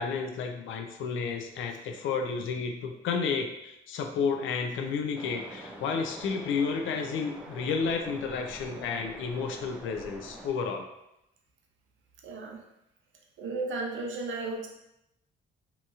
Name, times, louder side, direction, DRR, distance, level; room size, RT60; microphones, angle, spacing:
voice 1, 0.0-10.9, left 5 dB, 75° left, 5 dB, 0.4 m, -31 dB
Waves surf, 5.1-10.5, right 1 dB, 5° right, 0.5 m, -45 dB
voice 2, 12.2-12.6 13.4-14.7, right 3 dB, 75° right, 1 dB, 0.6 m, -34 dB
2.8 x 2.8 x 2.3 m, 0.85 s
cardioid pair, 90°, 20 cm